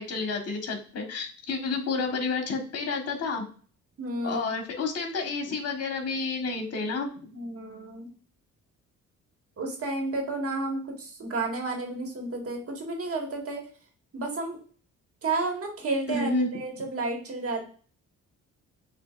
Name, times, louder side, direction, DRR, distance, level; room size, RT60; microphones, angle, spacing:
voice 1, 0.0-3.5 4.2-7.3 16.1-16.5 16.8-16.9, left 3 dB, 55° left, 3 dB, 1.3 m, -30 dB
voice 2, 4.0-4.5 7.3-8.1 9.6-13.6 14.1-14.6 15.2-17.6, right 3 dB, 50° right, 2 dB, 1.6 m, -31 dB
6.5 x 2.7 x 2.4 m, 0.42 s
cardioid pair, 80°, 30 cm